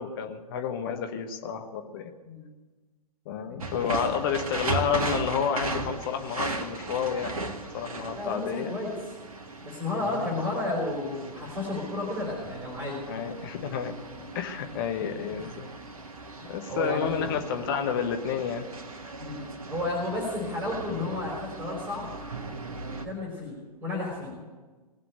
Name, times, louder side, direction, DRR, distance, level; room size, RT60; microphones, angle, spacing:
voice 1, 0.0-2.1 3.2-7.4 7.7-8.8 10.0-10.3 13.1-13.9 14.3-15.7 16.5-18.7, left 7 dB, 35° left, 6 dB, 1.2 m, -30 dB
voice 2, 3.4-4.1 8.1-8.9 9.6-13.0 15.2-15.4 16.7-17.3 19.2-22.1 22.9-24.4, left 2 dB, 10° right, -2 dB, 4.8 m, -32 dB
sound 1, 3.6-23.1, right 3 dB, 60° right, 1.8 m, -37 dB
19.0 x 7.6 x 9.3 m, 1.3 s
figure-of-eight pair, 120°, 20 cm